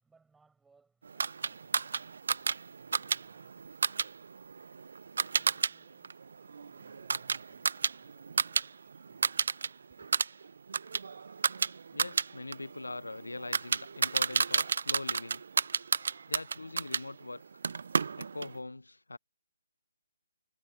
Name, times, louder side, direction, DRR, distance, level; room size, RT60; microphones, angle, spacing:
voice 1, 0.0-4.5 9.9-10.2, right 4 dB, 5° right, 5.2 m, -71 dB
sound 1, 1.2-5.7 6.0-8.7 8.9-9.7 10.0-17.0 17.6-18.5, right 5 dB, 60° right, 0.3 m, -31 dB
voice 2, 11.9-15.4 16.3-17.4 18.2-19.2, left 2 dB, 85° left, 0.4 m, -42 dB
figure-of-eight pair, 145°, 0 cm